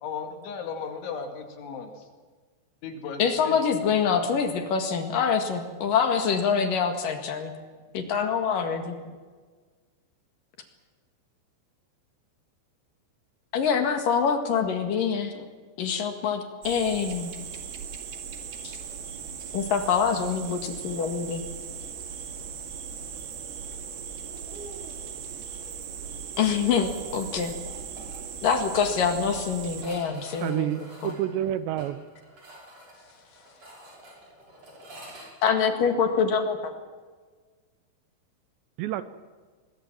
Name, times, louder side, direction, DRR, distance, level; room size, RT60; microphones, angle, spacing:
voice 1, 0.0-2.1 2.8-3.6 9.0-9.2, left 6 dB, 85° left, 4 dB, 4.5 m, -36 dB
voice 2, 3.2-7.5 7.9-9.0 13.5-15.4 15.8-17.3 18.6-18.8 19.5-21.4 26.4-27.6 28.4-30.8 31.0-31.2 35.4-36.7, left 6 dB, 55° left, 5 dB, 3.1 m, -25 dB
sound 1, 16.6-29.9, right 7 dB, 65° right, 3.7 m, -38 dB
sound 2, 27.7-28.2 28.5-28.6 28.9-29.0 29.7-35.3, right 1 dB, 35° right, 7.2 m, -47 dB
voice 3, 30.1-32.0 38.8-39.0, right 12 dB, 80° right, 13 dB, 2.9 m, -29 dB
22.5 x 21.5 x 7.5 m, 1.5 s
omnidirectional pair, 5.3 m